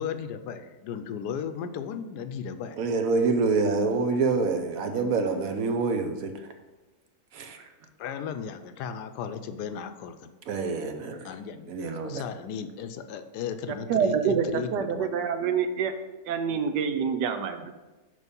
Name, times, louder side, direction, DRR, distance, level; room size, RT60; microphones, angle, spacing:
voice 1, 0.0-2.9 8.0-10.3 11.2-11.8 12.0-15.1, left 7 dB, 80° left, 9 dB, 1.1 m, -35 dB
voice 2, 2.8-6.3 7.3-7.6 10.5-11.2 11.7-12.2, right 4 dB, 65° right, 6 dB, 1.1 m, -26 dB
voice 3, 13.9-15.9 16.3-17.7, right 7 dB, 85° right, 8 dB, 1.3 m, -26 dB
6.5 x 5.1 x 5.3 m, 1.1 s
omnidirectional pair, 1.8 m